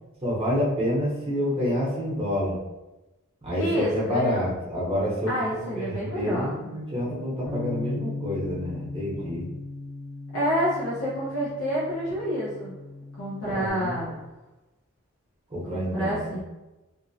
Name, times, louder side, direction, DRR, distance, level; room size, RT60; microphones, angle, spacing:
voice 1, 0.2-2.6 3.4-9.5 13.4-14.0 15.5-16.4, equal, 25° right, -7 dB, 0.7 m, -28 dB
voice 2, 3.6-4.4 5.3-6.5 10.3-12.7 13.2-14.2 15.7-16.4, equal, 70° left, -8 dB, 0.7 m, -28 dB
Bass guitar, 7.5-13.7, left 3 dB, 15° left, 0.5 m, -37 dB
2.6 x 2.0 x 2.6 m, 1.1 s
head